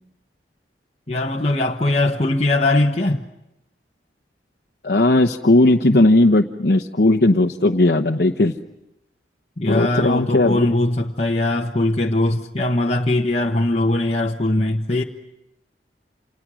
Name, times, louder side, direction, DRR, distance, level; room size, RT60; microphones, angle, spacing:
voice 1, 1.1-3.2 9.6-15.0, left 2 dB, 35° left, 1.1 m, -20 dB
voice 2, 4.8-8.6 9.7-10.7, left 2 dB, 60° left, 1.0 m, -16 dB
29.0 x 28.5 x 6.3 m
head